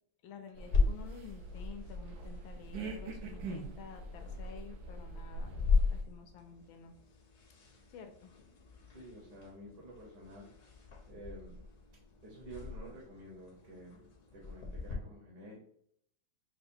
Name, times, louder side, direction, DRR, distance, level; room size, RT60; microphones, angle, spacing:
voice 1, 0.2-6.9 7.9-8.9, left 6 dB, 75° left, 6 dB, 1.3 m, -51 dB
sound 1, 0.5-6.0, right 3 dB, 70° right, 0.9 m, -44 dB
sound 2, 0.7-14.9, left 4 dB, 60° left, 0.7 m, -37 dB
voice 2, 8.9-10.5 11.0-11.6 12.2-15.6, right 1 dB, 55° right, -3 dB, 1.5 m, -50 dB
6.8 x 2.3 x 2.7 m, 0.69 s
omnidirectional pair, 2.4 m